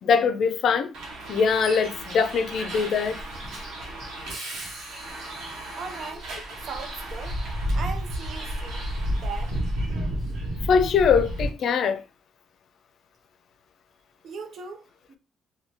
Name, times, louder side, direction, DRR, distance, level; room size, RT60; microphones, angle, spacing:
voice 1, 0.0-0.9 1.3-3.2 10.7-12.0, left 6 dB, 65° left, 0.4 m, -22 dB
Bus, 0.9-11.5, equal, 80° right, 1.0 m, -32 dB
voice 2, 5.7-6.3 6.6-7.4 7.7-8.9 9.1-9.6 14.2-15.2, right 5 dB, 65° right, 0.6 m, -38 dB
2.7 x 2.2 x 3.0 m
cardioid pair, 90°, 0 cm